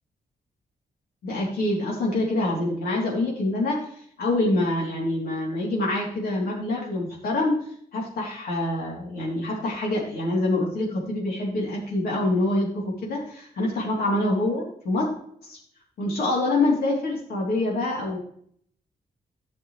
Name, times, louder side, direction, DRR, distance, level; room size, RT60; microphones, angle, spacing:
voice 1, 1.2-3.9 4.2-7.6 7.9-15.1 15.4-15.6 16.0-18.2, left 2 dB, 90° left, -3 dB, 3.2 m, -25 dB
12.5 x 6.6 x 3.2 m, 0.63 s
wide cardioid pair, 155°, 15 cm